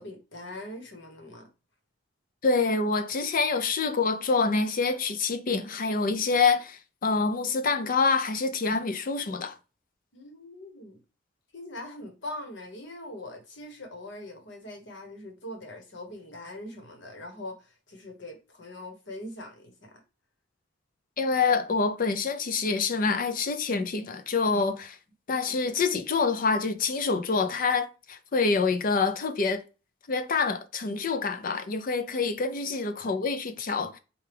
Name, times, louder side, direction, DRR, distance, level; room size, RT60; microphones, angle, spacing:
voice 1, 0.0-1.5 10.1-11.0 11.5-20.0 25.3-25.6 33.0-33.1, left 1 dB, 65° left, 1.2 m, -42 dB
voice 2, 2.4-9.6 21.2-25.0 25.3-29.6 30.1-34.0, left 4 dB, 45° left, 0.5 m, -26 dB
4.5 x 2.3 x 3.4 m
head